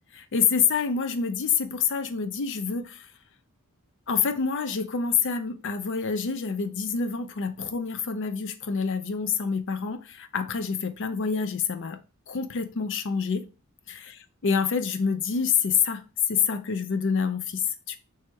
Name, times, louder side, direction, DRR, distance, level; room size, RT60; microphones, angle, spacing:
voice 1, 0.1-3.1 4.1-12.0 12.3-13.5 13.9-14.2 14.4-16.0 16.3-18.0, left 6 dB, 60° left, 0.5 m, -27 dB
3.4 x 3.1 x 4.5 m
head